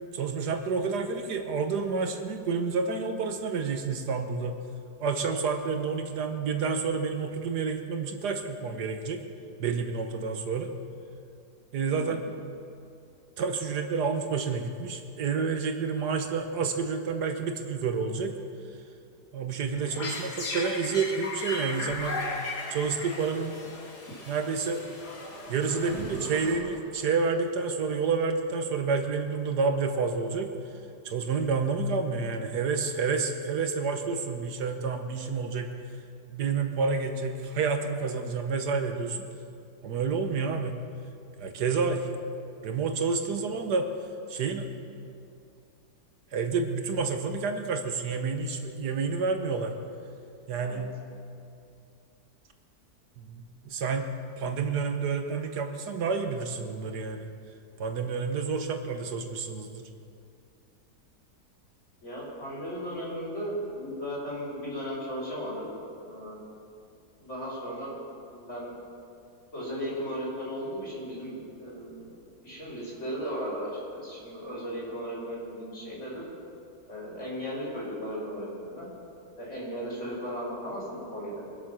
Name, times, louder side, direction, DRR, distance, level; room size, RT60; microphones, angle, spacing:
voice 1, 0.1-4.6 5.0-9.2 9.6-10.7 11.7-12.2 13.4-18.3 19.3-22.2 22.7-23.6 24.3-24.8 25.5-30.5 31.0-35.7 36.3-39.3 39.8-40.8 41.4-42.1 42.6-43.9 44.3-44.7 46.3-49.7 50.5-50.9 53.2-54.1 54.4-57.3 57.8-59.9, right 5 dB, 75° right, 6 dB, 1.6 m, -29 dB
voice 2, 11.8-12.3 50.6-50.9 62.0-65.6 66.0-66.4 67.2-68.0 68.3-68.7 69.5-72.2 72.4-76.2 76.9-78.9 79.4-81.5, equal, 45° left, -6 dB, 5.6 m, -36 dB
sound 1, 19.7-27.0, left 2 dB, 75° left, 4.0 m, -37 dB
24.0 x 8.5 x 6.2 m, 2.5 s
omnidirectional pair, 1.8 m